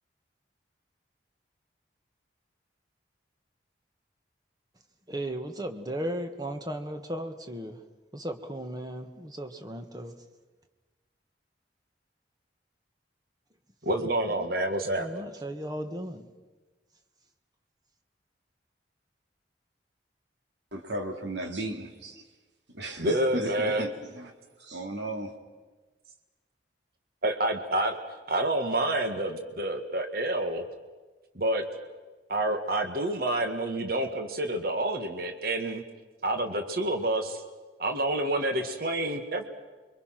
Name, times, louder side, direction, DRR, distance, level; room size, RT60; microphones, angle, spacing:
voice 1, 5.1-7.8 8.1-10.1 15.0-16.2, right 1 dB, 20° right, 6 dB, 1.6 m, -36 dB
voice 2, 13.8-15.2 23.0-23.9 27.2-28.0 28.3-30.7 31.4-31.6 32.3-35.8 36.2-37.4 37.8-39.5, right 1 dB, 55° right, 5 dB, 1.8 m, -28 dB
voice 3, 20.7-22.2 22.7-24.3 24.6-25.3, right 1 dB, 75° right, 3 dB, 2.8 m, -35 dB
29.5 x 24.5 x 6.0 m, 1.3 s
head